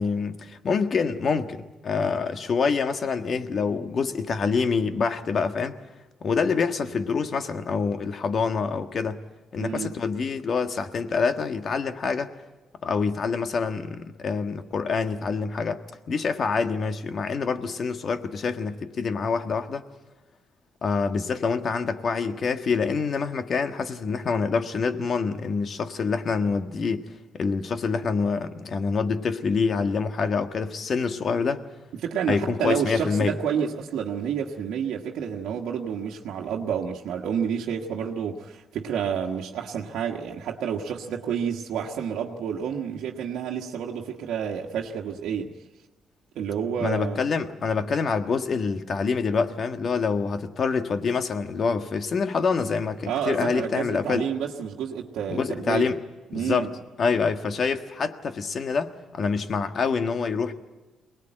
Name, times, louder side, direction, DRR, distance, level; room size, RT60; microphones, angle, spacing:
voice 1, 0.0-5.8 6.2-9.2 9.5-12.3 12.8-19.8 20.8-31.6 32.3-33.4 46.8-54.3 55.3-56.0 56.3-56.7 57.0-60.5, left 5 dB, 50° left, 1.6 m, -26 dB
voice 2, 9.6-10.0 32.0-45.5 46.3-47.2 53.0-55.9 56.3-56.7, right 8 dB, 80° right, 1.4 m, -29 dB
23.0 x 19.5 x 9.1 m
cardioid pair, 90°, 0 cm